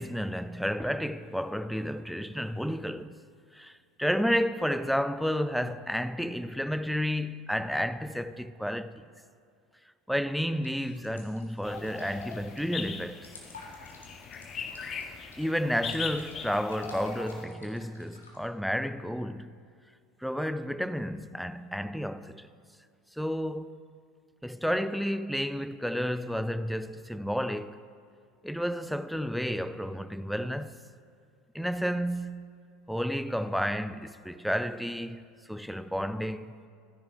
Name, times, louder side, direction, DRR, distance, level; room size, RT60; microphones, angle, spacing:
voice 1, 0.0-3.2 3.5-3.7 4.0-9.0 10.1-13.3 15.4-19.6 20.2-22.5 23.2-23.8 24.4-27.8 28.4-30.8 31.5-32.5 32.9-35.2 35.5-36.5, equal, ahead, 0.4 m, -31 dB
sound 1, 10.6-18.4, left 2 dB, 85° left, 1.8 m, -49 dB
sound 2, 11.6-17.4, left 6 dB, 35° left, 0.7 m, -40 dB
13.5 x 10.0 x 3.8 m
figure-of-eight pair, 75°, 0 cm